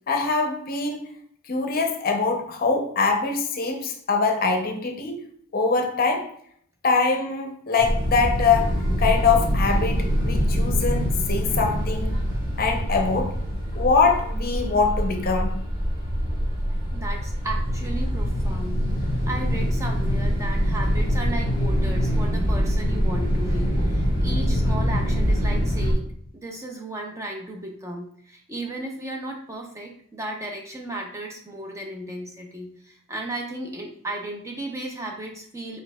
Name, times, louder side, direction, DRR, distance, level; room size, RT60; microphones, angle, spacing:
voice 1, 0.1-1.0 1.5-5.2 5.5-6.3 6.8-12.1 12.6-13.4 13.7-15.6, left 4 dB, 40° left, 3 dB, 0.6 m, -23 dB
sound 1, 7.8-25.9, equal, 50° right, 1.7 m, -24 dB
voice 2, 16.9-35.8, right 1 dB, 15° right, 1 dB, 0.5 m, -35 dB
4.8 x 4.1 x 2.2 m, 0.64 s
head